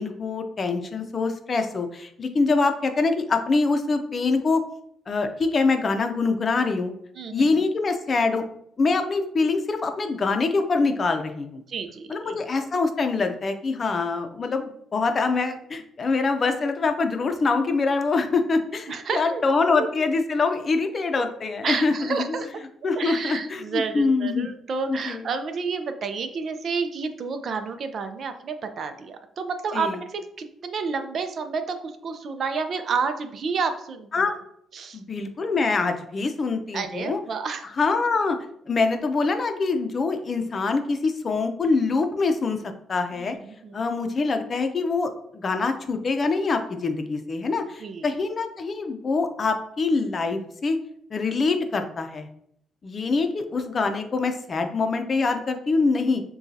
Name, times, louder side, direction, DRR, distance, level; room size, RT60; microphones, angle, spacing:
voice 1, 0.0-4.6 5.1-6.9 7.3-8.4 8.8-11.6 12.1-22.4 22.8-24.5 24.9-25.3 29.7-30.0 34.1-34.3 34.9-37.2 37.8-38.4 38.7-42.6 42.9-43.4 43.7-50.8 51.1-52.3 52.8-56.2, left 4 dB, 40° left, 6 dB, 0.6 m, -24 dB
voice 2, 7.2-7.5 11.7-12.4 18.9-19.4 19.8-19.9 21.2-21.3 21.6-22.5 23.0-34.2 34.7-35.0 36.7-37.7 43.1-43.3 43.6-43.8 47.8-48.1, right 5 dB, 55° right, 8 dB, 0.5 m, -30 dB
6.9 x 2.3 x 2.7 m, 0.71 s
cardioid pair, 90°, 0 cm